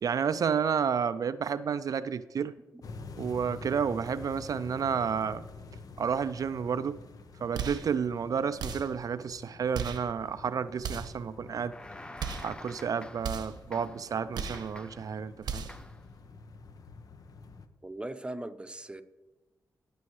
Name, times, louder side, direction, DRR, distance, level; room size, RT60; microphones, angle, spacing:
voice 1, 0.0-2.5 3.2-5.4 6.0-7.0 7.4-11.7 12.4-15.6, right 7 dB, 60° right, 13 dB, 0.4 m, -31 dB
sound 1, 2.8-17.7, left 3 dB, 60° left, 0.8 m, -48 dB
sound 2, 7.5-7.9 8.6-9.0 9.7-10.1 10.8-11.2 12.2-12.6 13.2-13.6 14.3-14.7 15.4-15.9, right 6 dB, 85° right, 0.9 m, -36 dB
sound 3, 11.4-13.4 13.7-14.1 14.5-15.2 15.7-16.1, left 2 dB, 15° left, 0.4 m, -48 dB
voice 2, 17.8-19.0, right 1 dB, 15° right, 9 dB, 0.8 m, -39 dB
16.5 x 6.2 x 3.1 m, 1.1 s
cardioid pair, 65°, 7 cm